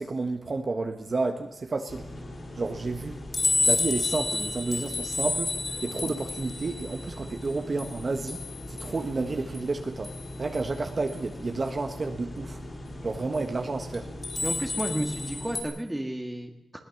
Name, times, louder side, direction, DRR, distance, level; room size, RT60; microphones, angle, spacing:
voice 1, 0.0-2.1 2.6-3.2 3.7-5.5 5.8-8.4 8.7-10.1 10.4-12.6 13.0-14.1, right 3 dB, 35° right, 5 dB, 1.5 m, -31 dB
sound 1, 1.9-15.6, left 3 dB, 35° left, 4.9 m, -32 dB
voice 2, 14.4-16.8, right 1 dB, 10° right, 3 dB, 1.8 m, -32 dB
21.5 x 17.5 x 7.2 m, 0.89 s
wide cardioid pair, 125°, 0 cm